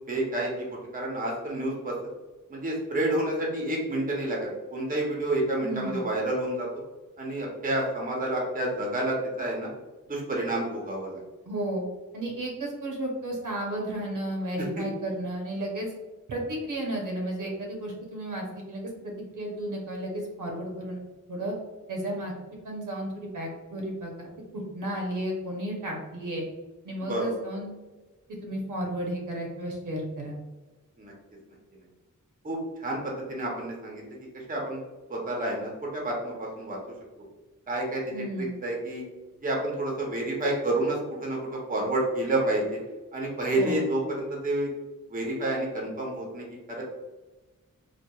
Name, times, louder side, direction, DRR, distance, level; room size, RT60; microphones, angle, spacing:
voice 1, 0.1-1.9 2.5-6.7 7.2-9.7 10.1-11.2 14.8-14.9 27.0-27.3 31.0-31.1 32.4-34.8 35.1-36.8 37.7-38.0 38.4-39.0 39.4-42.8 43.1-44.7 45.1-46.8, right 1 dB, 25° right, -2 dB, 0.6 m, -29 dB
voice 2, 5.6-6.0 11.5-11.8 12.1-15.9 16.3-21.0 21.3-21.5 21.9-22.3 22.6-26.5 26.8-27.7 28.4-30.4 38.1-38.5 43.5-43.8, right 1 dB, 75° right, 0 dB, 0.7 m, -33 dB
2.9 x 2.3 x 2.2 m, 1.2 s
wide cardioid pair, 130°, 32 cm